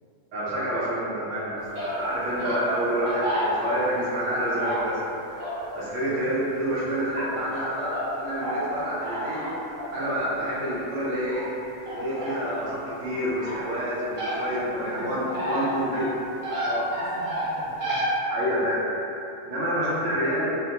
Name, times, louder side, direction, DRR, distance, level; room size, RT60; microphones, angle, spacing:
voice 1, 0.3-5.0 5.7-9.5 9.9-11.5 11.9-16.1 16.6-16.9 18.3-18.9 19.4-20.5, equal, 75° right, -8 dB, 1.0 m, -28 dB
sound 1, 1.7-1.9 2.4-2.6 3.0-3.9 4.6-4.8 5.3-5.7 6.1-6.2 7.2-7.6 7.9-8.1 8.4-8.6 9.0-9.9 11.3-11.4 11.9-12.6 13.1-13.6 14.2-14.4 14.9-15.7 15.9-16.1 16.4-18.1, equal, 45° right, 0.7 m, -30 dB
voice 2, 14.6-16.2 17.0-18.1 20.2-20.4, right 1 dB, 55° left, -11 dB, 0.6 m, -43 dB
2.5 x 2.2 x 2.7 m, 2.9 s
omnidirectional pair, 1.3 m